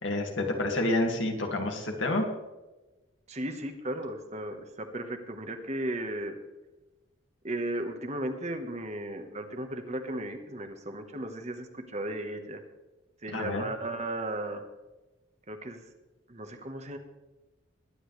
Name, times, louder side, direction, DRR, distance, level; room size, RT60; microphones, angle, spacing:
voice 1, 0.0-2.3 13.3-13.6, left 2 dB, 70° left, 2 dB, 2.2 m, -28 dB
voice 2, 3.3-6.4 7.4-12.6 13.2-14.6 15.5-15.8 16.3-17.0, right 1 dB, 35° right, 6 dB, 1.2 m, -35 dB
21.5 x 10.0 x 3.3 m, 1.1 s
head